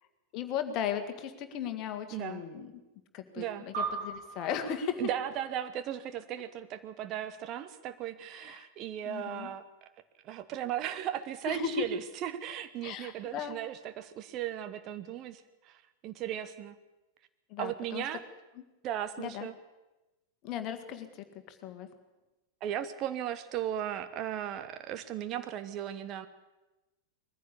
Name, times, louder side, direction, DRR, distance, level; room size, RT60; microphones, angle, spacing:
voice 1, 0.3-2.7 3.1-5.0 8.4-8.7 9.1-9.5 11.5-11.9 12.8-13.6 17.5-18.0 19.2-19.5 20.4-21.9, left 8 dB, 40° left, 8 dB, 1.9 m, -36 dB
voice 2, 2.1-2.4 3.4-3.7 5.0-9.6 10.2-16.7 17.6-18.2 18.8-19.5 22.6-26.3, right 11 dB, 35° right, 11 dB, 1.1 m, -36 dB
sound 1, 3.7-6.5, right 5 dB, 55° right, 3.3 m, -40 dB
21.0 x 15.0 x 8.4 m, 1.1 s
figure-of-eight pair, 90°, 0 cm